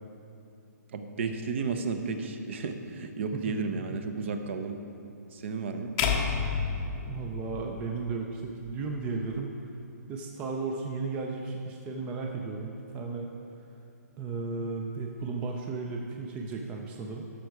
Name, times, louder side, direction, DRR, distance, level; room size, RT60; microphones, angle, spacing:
voice 1, 0.9-4.8 5.3-5.9, right 4 dB, 45° right, 7 dB, 0.8 m, -33 dB
sound 1, 6.0-8.2, left 6 dB, 20° left, 0.7 m, -30 dB
voice 2, 7.1-9.6 10.1-13.3 14.2-17.3, right 4 dB, 15° right, 1 dB, 0.5 m, -34 dB
13.0 x 6.6 x 4.7 m, 2.7 s
hypercardioid pair, 160°, 9 cm